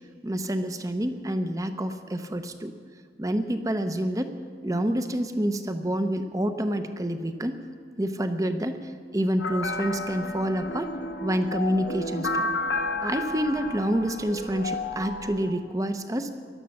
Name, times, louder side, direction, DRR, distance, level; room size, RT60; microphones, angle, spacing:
voice 1, 0.2-2.7 3.2-4.3 4.6-7.6 8.0-8.8 9.1-10.9 11.2-12.5 13.0-16.3, equal, 20° right, 8 dB, 0.8 m, -28 dB
sound 1, 9.4-15.5, left 2 dB, 90° left, 1.5 m, -32 dB
17.5 x 12.0 x 6.6 m, 2.1 s
head